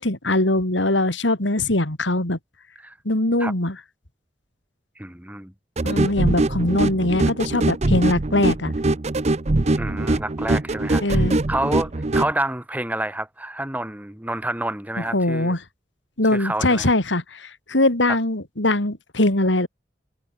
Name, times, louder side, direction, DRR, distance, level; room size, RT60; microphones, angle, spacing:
voice 1, 0.0-2.4 3.1-3.8 5.8-8.7 11.0-11.4 15.1-15.6 16.2-19.7, left 1 dB, 90° left, 3.5 m, -21 dB
voice 2, 5.0-5.5 9.8-15.5 16.3-16.9, right 1 dB, 10° right, 1.8 m, -28 dB
sound 1, 5.8-12.3, right 2 dB, 35° right, 0.7 m, -22 dB
head